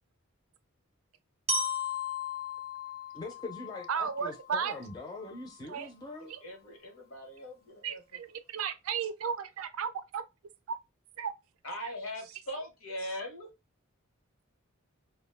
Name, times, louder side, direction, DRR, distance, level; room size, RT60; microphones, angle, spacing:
Glockenspiel, 1.5-5.5, left 3 dB, 30° right, 0.6 m, -36 dB
voice 1, 3.1-6.3, left 2 dB, 20° left, 0.5 m, -42 dB
voice 2, 3.9-4.7 5.7-5.9 6.3-6.4 7.8-10.2 10.7-10.8 11.2-11.3, right 7 dB, 75° right, 0.4 m, -34 dB
voice 3, 6.2-8.0 11.6-13.5, left 1 dB, 75° left, 1.0 m, -40 dB
2.4 x 2.1 x 3.3 m
head